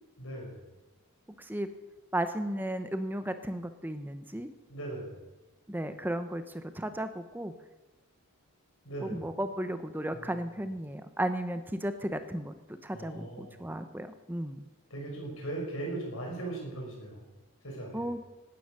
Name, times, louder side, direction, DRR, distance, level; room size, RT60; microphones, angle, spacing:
voice 1, 0.2-0.6 4.7-5.2 8.8-9.2 10.1-10.6 12.9-13.7 14.9-17.2 17.6-18.1, right 2 dB, 65° left, -1 dB, 6.1 m, -39 dB
voice 2, 1.4-1.7 2.1-4.5 5.7-6.4 6.7-7.5 9.0-12.5 12.8-14.6 17.9-18.2, right 1 dB, 10° right, 9 dB, 0.8 m, -34 dB
18.0 x 10.0 x 6.7 m, 1.1 s
head